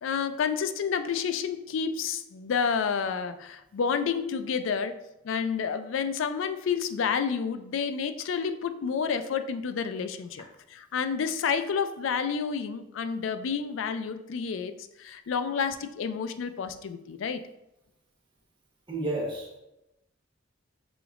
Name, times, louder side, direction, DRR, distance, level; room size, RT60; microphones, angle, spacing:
voice 1, 0.0-4.9 5.2-10.4 10.7-17.4, left 6 dB, 80° left, 10 dB, 0.4 m, -30 dB
voice 2, 18.9-19.6, right 1 dB, 25° right, -3 dB, 1.0 m, -31 dB
5.0 x 3.9 x 2.4 m, 0.90 s
head